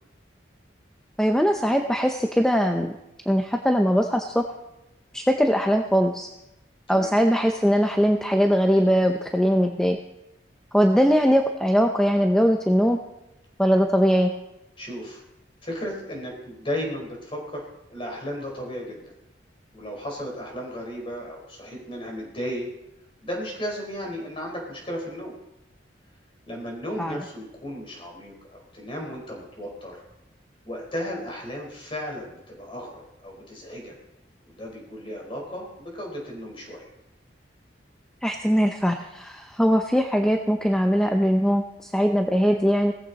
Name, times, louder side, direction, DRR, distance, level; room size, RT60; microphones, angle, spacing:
voice 1, 1.2-2.9 3.3-4.4 5.1-6.3 6.9-10.0 10.7-13.0 13.6-14.3 27.0-27.2 38.2-42.9, equal, 5° left, 4 dB, 0.7 m, -21 dB
voice 2, 14.8-15.2 15.6-19.0 19.7-22.7 23.2-25.3 26.5-29.9 30.6-33.9 34.5-36.9, equal, 30° left, 0 dB, 4.4 m, -34 dB
18.0 x 15.0 x 4.1 m, 0.91 s
head